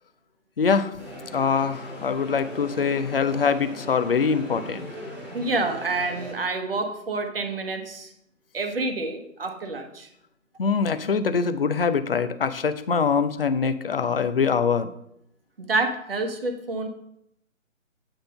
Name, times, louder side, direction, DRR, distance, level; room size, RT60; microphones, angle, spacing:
voice 1, 0.6-0.9 1.3-4.9 10.6-14.9, left 5 dB, 45° left, 12 dB, 0.5 m, -23 dB
sound 1, 1.0-6.3, equal, 5° right, 1.1 m, -39 dB
voice 2, 5.3-8.1 8.5-10.1 15.6-16.9, right 3 dB, 45° right, 6 dB, 1.0 m, -28 dB
8.9 x 3.8 x 5.4 m, 0.77 s
figure-of-eight pair, 140°, 40 cm